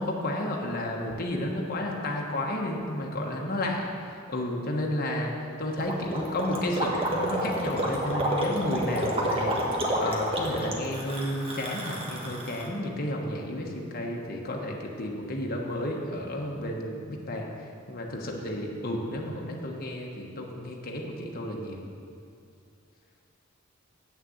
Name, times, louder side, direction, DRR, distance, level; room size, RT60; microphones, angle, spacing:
voice 1, 0.0-17.5 17.9-21.9, left 1 dB, 45° left, 0 dB, 1.2 m, -32 dB
Gurgling, 5.8-12.7, right 1 dB, 30° right, 1.4 m, -29 dB
8.9 x 6.6 x 7.9 m, 2.4 s
head